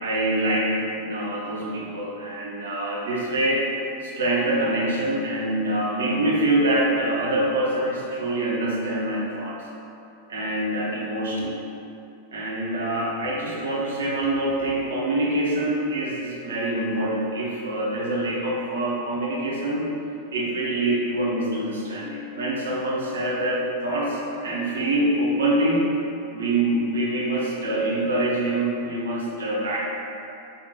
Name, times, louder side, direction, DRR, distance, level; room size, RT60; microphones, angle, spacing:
voice 1, 0.0-3.6 4.0-9.6 10.3-11.6 12.3-19.9 20.3-25.9 26.3-29.8, right 1 dB, 65° right, -4 dB, 0.6 m, -25 dB
2.5 x 2.2 x 3.6 m, 2.7 s
figure-of-eight pair, 90°, 0 cm